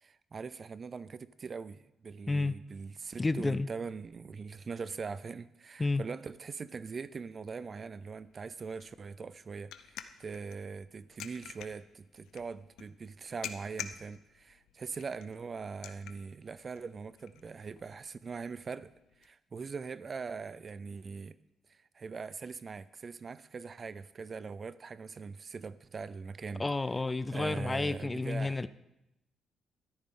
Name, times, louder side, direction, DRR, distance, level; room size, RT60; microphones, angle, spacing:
voice 1, 0.0-18.9 19.2-21.4 21.7-26.6 27.3-28.6, right 5 dB, 40° right, 0.4 m, -42 dB
voice 2, 3.2-3.7 5.8-6.0 26.6-28.7, left 3 dB, 20° left, 0.5 m, -30 dB
sound 1, 8.0-19.3, left 9 dB, 90° left, 0.7 m, -50 dB
14.0 x 13.0 x 3.8 m
cardioid pair, 105°, 0 cm